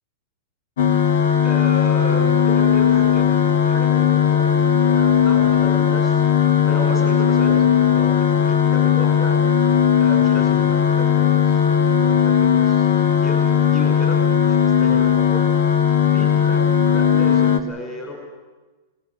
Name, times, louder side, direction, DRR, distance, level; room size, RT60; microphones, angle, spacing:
sound 1, 0.8-17.6, left 8 dB, 80° left, 1.8 m, -17 dB
voice 1, 1.4-9.5 10.0-15.5 16.0-16.6 16.9-18.1, left 1 dB, 20° left, 1 dB, 5.5 m, -34 dB
24.0 x 20.0 x 7.8 m, 1.2 s
supercardioid pair, 155°, 0 cm